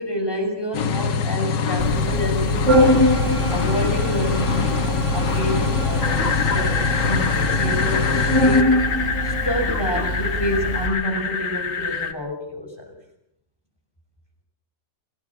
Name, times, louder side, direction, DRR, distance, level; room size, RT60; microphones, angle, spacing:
voice 1, 0.0-3.0 3.5-8.8 9.2-13.0, left 1 dB, 15° left, 3 dB, 5.7 m, -28 dB
sound 1, 0.7-8.6, left 5 dB, 80° left, 1.8 m, -24 dB
Organ, 1.8-10.9, equal, 30° right, 3.9 m, -23 dB
sound 2, 6.0-12.1, left 5 dB, 50° left, 1.8 m, -26 dB
28.0 x 18.0 x 7.2 m, 0.77 s
omnidirectional pair, 1.9 m